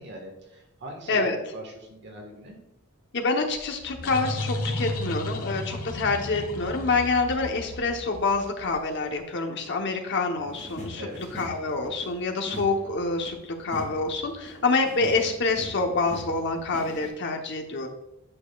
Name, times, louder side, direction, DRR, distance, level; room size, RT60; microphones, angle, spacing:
voice 1, 0.0-2.6 10.9-11.2, equal, 55° right, 2 dB, 1.6 m, -41 dB
voice 2, 3.1-17.9, left 3 dB, 55° left, 4 dB, 1.0 m, -27 dB
sound 1, 3.5-9.0, left 2 dB, 90° left, 1.3 m, -34 dB
sound 2, 10.4-17.1, equal, 35° left, 2.4 m, -43 dB
8.7 x 6.5 x 2.4 m, 0.92 s
head